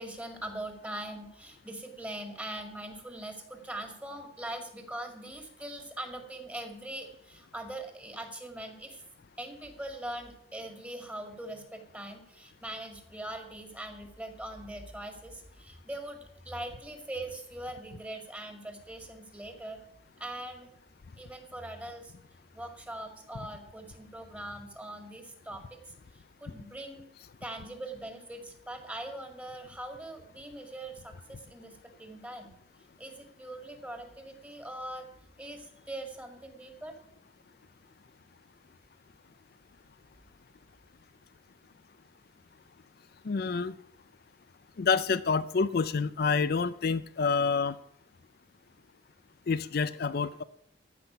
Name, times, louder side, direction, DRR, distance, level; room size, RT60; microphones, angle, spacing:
voice 1, 0.0-9.0 9.4-19.8 20.2-20.7 21.2-22.1 22.5-27.0 27.4-32.5 33.0-35.1 35.4-36.9, right 1 dB, 10° right, 5 dB, 2.1 m, -42 dB
voice 2, 43.2-43.8 44.8-47.8 49.5-50.4, left 5 dB, 55° left, 13 dB, 0.5 m, -28 dB
14.5 x 5.9 x 9.9 m, 0.73 s
head